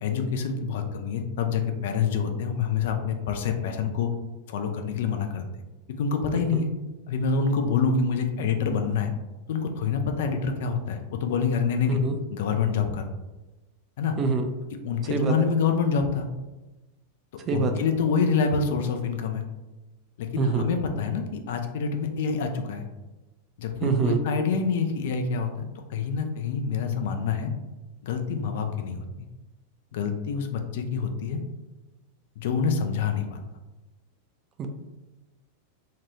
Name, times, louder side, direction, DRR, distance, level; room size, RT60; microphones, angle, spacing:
voice 1, 0.0-4.1 4.5-5.4 6.0-6.7 7.1-9.1 9.5-12.0 12.3-13.1 14.0-14.1 14.8-16.3 17.5-19.4 20.2-22.8 23.6-27.5 28.0-29.1 29.9-31.4 32.4-33.4, left 5 dB, 55° left, 5 dB, 0.3 m, -26 dB
voice 2, 15.1-15.5 17.5-17.7 20.4-20.6 23.8-24.2 34.6-34.7, right 4 dB, 30° right, 5 dB, 0.4 m, -25 dB
2.8 x 2.2 x 3.0 m, 1.1 s
figure-of-eight pair, 90°, 0 cm